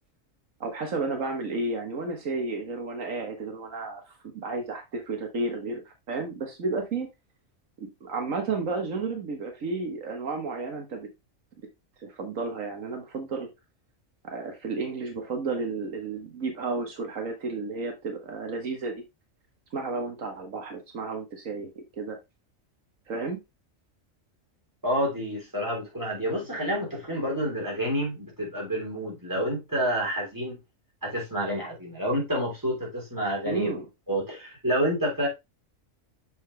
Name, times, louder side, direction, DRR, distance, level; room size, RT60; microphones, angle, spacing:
voice 1, 0.6-7.1 7.8-11.1 12.0-13.5 14.2-18.9 19.7-22.2 23.1-23.4 33.4-33.9, right 3 dB, 75° right, 1.7 m, -32 dB
voice 2, 24.8-30.6 31.0-33.7 34.1-35.3, equal, 15° right, 3.3 m, -28 dB
6.8 x 5.3 x 3.2 m
omnidirectional pair, 1.4 m